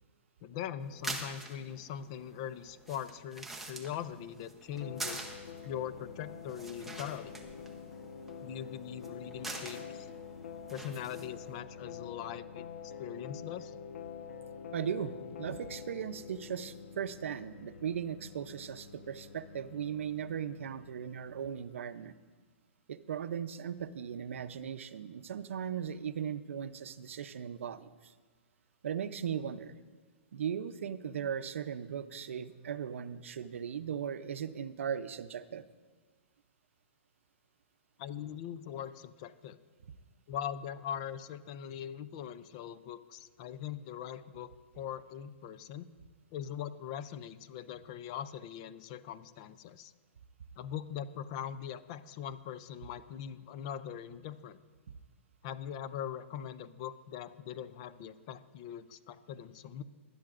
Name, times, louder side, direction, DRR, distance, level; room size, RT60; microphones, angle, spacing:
voice 1, 0.4-5.2 5.6-7.3 8.4-10.1 10.7-13.7 38.0-39.6 40.3-45.9 46.3-49.9 50.6-54.6 55.4-59.8, left 9 dB, 30° left, 14 dB, 0.4 m, -41 dB
sound 1, 0.8-11.6, right 2 dB, 5° right, 0.8 m, -46 dB
sound 2, 4.7-21.5, left 7 dB, 75° left, 1.0 m, -47 dB
voice 2, 14.7-22.2 22.9-28.1 28.8-29.7 30.3-35.7, right 8 dB, 75° right, 12 dB, 0.6 m, -38 dB
19.0 x 11.5 x 2.5 m, 1.4 s
hypercardioid pair, 170°, 7 cm